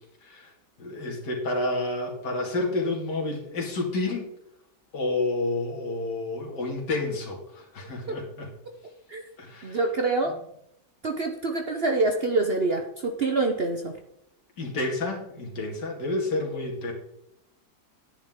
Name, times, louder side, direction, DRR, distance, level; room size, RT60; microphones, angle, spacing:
voice 1, 0.8-4.3 4.9-8.5 9.4-9.8 14.6-16.9, left 2 dB, 65° left, -1 dB, 2.9 m, -30 dB
voice 2, 9.6-10.3 11.0-13.9, right 3 dB, 55° right, 5 dB, 0.7 m, -26 dB
10.0 x 9.9 x 3.7 m, 0.79 s
omnidirectional pair, 1.9 m